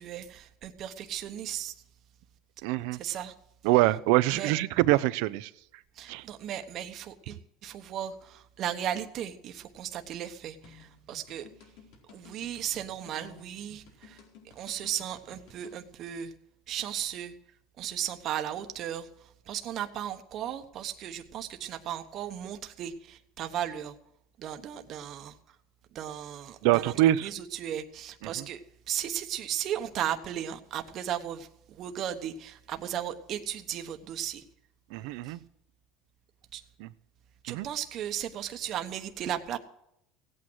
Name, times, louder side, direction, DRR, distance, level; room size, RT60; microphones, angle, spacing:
voice 1, 0.0-1.7 2.9-3.3 4.3-4.5 6.0-11.5 12.1-14.2 14.5-16.3 16.7-17.3 17.8-23.9 24.4-25.4 25.9-26.9 27.2-28.6 28.9-34.4 35.2-35.4 36.5-36.6 37.4-39.6, right 10 dB, 45° right, 6 dB, 1.1 m, -36 dB
voice 2, 2.6-3.0 3.6-5.5 6.1-6.2 26.6-27.3 28.4-28.5 34.9-35.4 36.8-36.9 37.5-37.7, right 16 dB, 75° right, 17 dB, 0.6 m, -24 dB
sound 1, 10.6-15.8, left 5 dB, 75° left, 4.4 m, -55 dB
17.0 x 8.7 x 6.3 m, 0.78 s
supercardioid pair, 125°, 0 cm